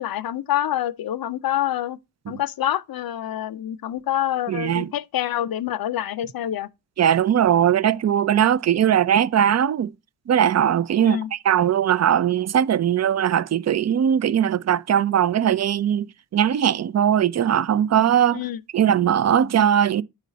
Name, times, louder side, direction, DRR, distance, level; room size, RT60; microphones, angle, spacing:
voice 1, 0.0-2.0 2.3-6.7 11.0-11.3 18.3-18.6, left 12 dB, 65° left, 0.6 m, -26 dB
voice 2, 4.5-4.9 7.0-9.9 10.3-18.4 18.7-20.0, right 9 dB, 45° right, 0.5 m, -20 dB
9.2 x 4.0 x 4.1 m
cardioid pair, 75°, 38 cm